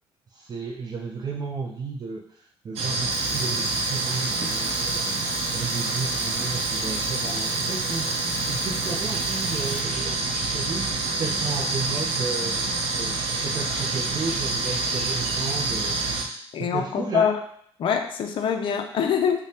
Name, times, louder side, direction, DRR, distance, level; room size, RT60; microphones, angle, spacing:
voice 1, 0.3-16.0 16.3-17.3, right 4 dB, 40° right, -2 dB, 0.5 m, -34 dB
sound 1, 2.8-16.2, right 3 dB, 75° right, 0.7 m, -27 dB
Bicycle, 3.1-9.8, left 1 dB, 30° left, 1.0 m, -40 dB
voice 2, 16.5-17.4 17.8-19.4, left 7 dB, 55° left, 5 dB, 0.5 m, -24 dB
4.9 x 2.1 x 2.9 m, 0.63 s
cardioid pair, 100°, 10 cm